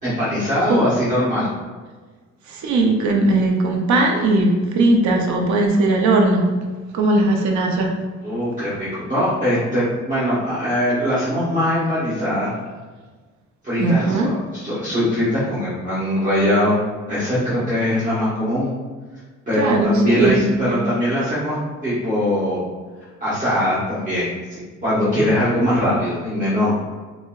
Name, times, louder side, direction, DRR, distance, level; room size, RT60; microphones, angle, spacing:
voice 1, 0.0-1.5 8.2-12.5 13.6-16.8 17.1-18.7 19.5-21.6 21.8-22.7 23.2-26.7, left 1 dB, 25° right, -11 dB, 1.2 m, -21 dB
voice 2, 2.5-6.5 6.9-7.9 13.8-14.3 19.6-20.8, right 2 dB, 70° right, 2 dB, 0.6 m, -18 dB
4.5 x 2.0 x 2.3 m, 1.4 s
cardioid pair, 90°, 30 cm